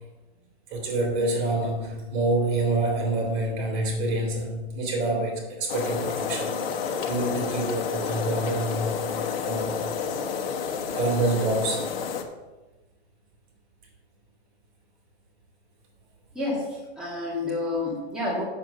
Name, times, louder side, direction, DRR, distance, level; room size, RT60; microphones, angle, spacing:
voice 1, 0.7-6.5 7.0-9.1 9.4-9.8 10.9-11.9, right 2 dB, 40° right, 0 dB, 3.5 m, -27 dB
sound 1, 5.7-12.2, left 6 dB, 60° left, 1.3 m, -30 dB
voice 2, 16.3-18.4, left 2 dB, ahead, -8 dB, 2.3 m, -29 dB
7.7 x 7.5 x 5.6 m, 1.1 s
hypercardioid pair, 145°, 33 cm